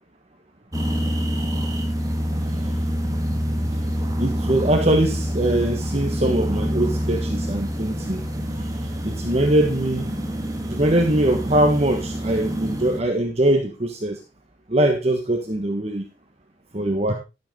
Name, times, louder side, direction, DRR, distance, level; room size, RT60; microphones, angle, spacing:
sound 1, 0.7-13.0, equal, 20° right, 2.1 m, -26 dB
voice 1, 4.2-8.2 8.6-8.7 9.0-10.1 10.6-14.2 14.7-16.0 16.7-17.1, right 1 dB, 35° right, 3 dB, 1.4 m, -22 dB
12.5 x 8.0 x 3.7 m, 0.27 s
head